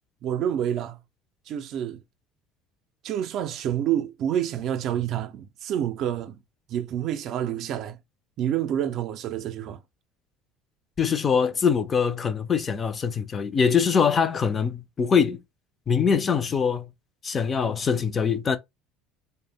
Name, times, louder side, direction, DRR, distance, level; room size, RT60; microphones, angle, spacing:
voice 1, 0.2-1.0 1.5-2.0 3.0-6.4 6.7-8.0 8.4-9.8, right 10 dB, 55° right, 0.4 m, -28 dB
voice 2, 11.0-15.4 15.9-16.9 17.2-18.6, left 6 dB, 30° left, 0.4 m, -23 dB
2.0 x 2.0 x 3.4 m
supercardioid pair, 100°, 0 cm